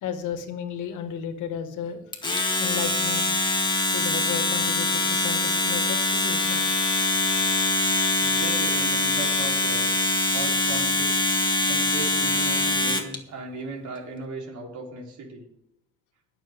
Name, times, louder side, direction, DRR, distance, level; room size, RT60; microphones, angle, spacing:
voice 1, 0.0-3.3 3.9-7.4, left 7 dB, 90° left, 8 dB, 1.7 m, -34 dB
Domestic sounds home sounds, 2.1-13.2, left 2 dB, 15° left, 2.1 m, -23 dB
voice 2, 8.2-9.9 10.3-11.3 11.7-15.4, right 4 dB, 70° right, -1 dB, 3.6 m, -37 dB
21.5 x 7.3 x 3.6 m, 0.78 s
cardioid pair, 90°, 30 cm